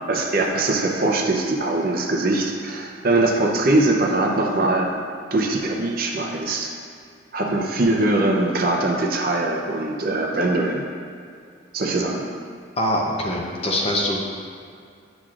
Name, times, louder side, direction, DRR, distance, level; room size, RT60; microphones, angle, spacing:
voice 1, 0.0-5.0 5.3-6.7 7.3-10.8 11.7-12.3, right 2 dB, 50° right, 1 dB, 0.6 m, -22 dB
voice 2, 12.8-14.2, left 1 dB, 30° left, -2 dB, 0.7 m, -23 dB
8.5 x 6.0 x 2.4 m, 2.3 s
head